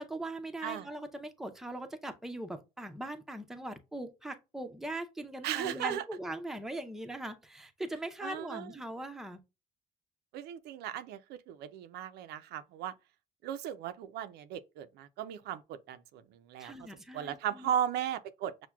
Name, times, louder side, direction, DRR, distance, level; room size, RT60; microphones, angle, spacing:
voice 1, 0.0-9.4 16.6-17.7, right 1 dB, ahead, 0.5 m, -40 dB
voice 2, 5.4-6.0 8.2-8.7 10.3-12.9 13.4-16.7 17.1-18.7, right 10 dB, 75° right, 0.4 m, -36 dB
5.9 x 2.1 x 2.2 m
cardioid pair, 110°, 17 cm